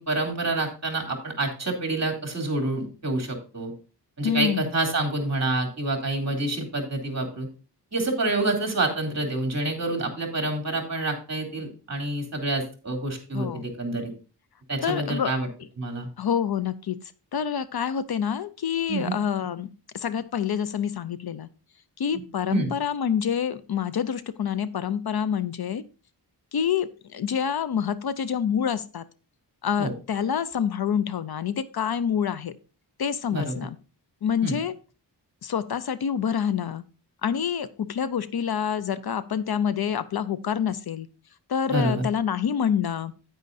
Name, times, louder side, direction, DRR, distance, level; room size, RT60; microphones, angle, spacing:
voice 1, 0.0-3.7 4.2-7.5 7.9-14.1 14.7-15.5 15.8-16.1 18.9-19.2 22.5-22.7 29.8-29.9 33.3-33.7 34.4-34.6 41.7-42.0, right 2 dB, 35° right, 3 dB, 2.8 m, -27 dB
voice 2, 4.2-4.7 13.3-13.7 14.8-15.3 16.2-17.0 17.3-19.7 19.9-21.5 22.0-25.8 26.5-29.0 29.6-32.5 33.0-33.8 34.2-34.7 35.4-36.8 37.2-41.1 41.5-43.1, left 8 dB, 60° left, 15 dB, 0.6 m, -27 dB
9.3 x 9.3 x 2.6 m, 0.34 s
wide cardioid pair, 115°, 43 cm